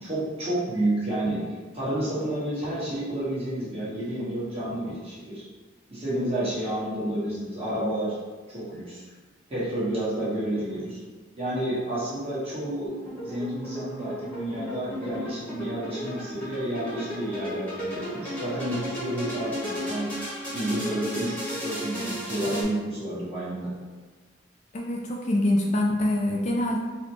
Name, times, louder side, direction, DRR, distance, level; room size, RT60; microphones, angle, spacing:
voice 1, 0.0-5.4 5.9-8.1 8.5-9.0 9.5-11.0 11.4-13.0 13.2-20.1 20.5-23.7, right 1 dB, 30° right, -10 dB, 1.3 m, -30 dB
sound 1, 12.9-22.6, equal, 10° left, 1.0 m, -35 dB
voice 2, 24.7-26.8, left 1 dB, 35° left, -1 dB, 0.3 m, -25 dB
4.0 x 2.2 x 2.9 m, 1.4 s
head